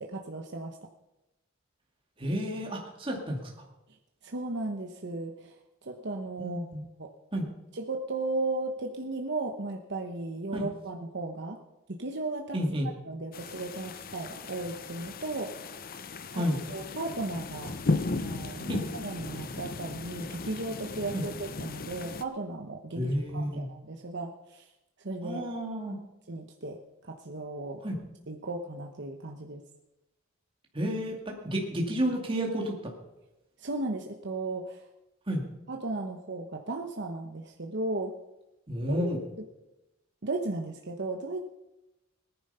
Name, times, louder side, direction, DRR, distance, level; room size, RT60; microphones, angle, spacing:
voice 1, 0.0-0.8 4.2-5.5 5.8-6.7 7.0-7.1 7.7-11.6 11.9-12.6 13.0-15.7 16.3-16.4 16.7-24.7 25.0-25.4 26.3-27.8 28.3-29.6 33.6-34.8 35.7-38.1 38.9-39.1 40.2-41.4, right 2 dB, 55° right, 2 dB, 1.0 m, -35 dB
voice 2, 2.2-3.5 6.4-6.8 7.3-7.5 10.5-10.7 12.5-12.9 16.3-16.6 18.7-18.8 21.1-21.2 23.0-23.7 25.2-26.0 27.8-28.0 30.7-32.9 35.3-35.4 38.7-39.2, equal, 25° right, 0 dB, 2.3 m, -31 dB
sound 1, 13.3-22.2, left 3 dB, 45° left, 0.7 m, -36 dB
19.0 x 10.5 x 5.6 m, 0.95 s
head